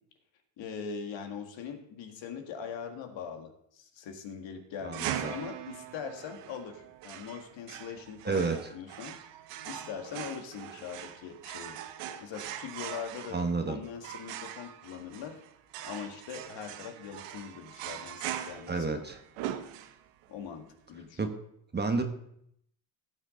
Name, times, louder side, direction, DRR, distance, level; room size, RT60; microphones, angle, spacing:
voice 1, 0.6-9.2 9.7-11.8 12.2-15.4 15.8-19.0 20.3-21.2, left 7 dB, 60° left, 5 dB, 1.9 m, -42 dB
voice 2, 4.8-5.4 8.2-8.7 13.3-13.8 18.7-19.2 21.2-21.3 21.7-22.0, right 4 dB, 20° right, 6 dB, 1.2 m, -30 dB
sound 1, 4.9-20.3, right 11 dB, 85° right, 1.0 m, -41 dB
16.0 x 6.3 x 3.8 m, 0.73 s
supercardioid pair, 100°, 50 cm